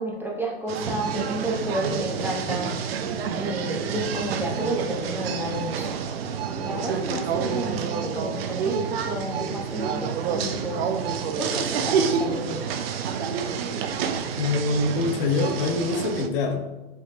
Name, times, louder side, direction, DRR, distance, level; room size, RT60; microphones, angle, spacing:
voice 1, 0.0-2.7 3.4-6.0 6.6-10.9 11.4-12.6, right 1 dB, 5° right, -3 dB, 0.6 m, -31 dB
sound 1, 0.7-16.3, right 6 dB, 70° right, 0.6 m, -29 dB
sound 2, 1.0-15.8, right 6 dB, 90° right, 1.2 m, -39 dB
voice 2, 14.4-16.7, left 3 dB, 60° left, 4 dB, 0.8 m, -24 dB
5.1 x 3.6 x 2.5 m, 1.1 s
hypercardioid pair, 115°, 31 cm